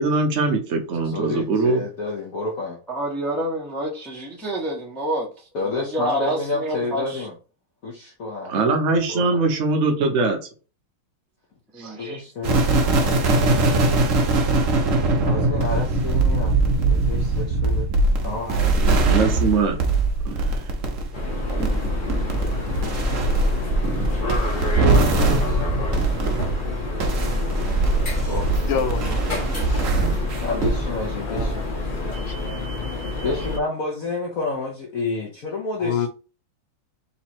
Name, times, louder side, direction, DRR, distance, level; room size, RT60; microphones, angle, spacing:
voice 1, 0.0-1.8 8.5-10.4 11.8-11.9 19.0-19.8 20.4-20.6, right 3 dB, 80° right, 0.6 m, -21 dB
voice 2, 1.0-2.8 5.5-7.3 7.8-8.8 9.1-9.4 11.9-13.8 15.2-16.5 16.9-17.9 18.2-19.2 25.0-25.7 27.8-28.7 30.4-31.6 33.2-36.1, left 3 dB, 55° left, 1.0 m, -30 dB
voice 3, 2.9-5.3 5.6-7.3 11.7-12.2, right 1 dB, ahead, 0.5 m, -28 dB
sound 1, 12.4-26.6 27.0-30.9 31.4-31.6, right 3 dB, 55° right, 0.9 m, -22 dB
sound 2, 21.1-33.6, left 2 dB, 35° left, 0.9 m, -27 dB
voice 4, 28.7-29.9 31.2-32.4 35.8-36.1, left 7 dB, 90° left, 1.7 m, -29 dB
4.0 x 3.0 x 4.3 m
omnidirectional pair, 2.4 m